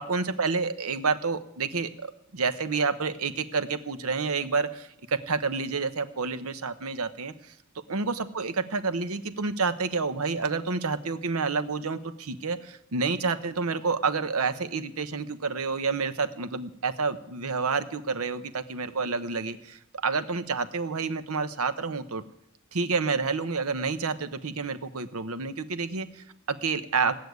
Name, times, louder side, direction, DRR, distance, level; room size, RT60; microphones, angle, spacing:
voice 1, 0.0-7.5 7.9-22.2 22.7-27.2, right 4 dB, 85° right, 10 dB, 1.0 m, -29 dB
17.0 x 6.6 x 9.4 m, 0.78 s
head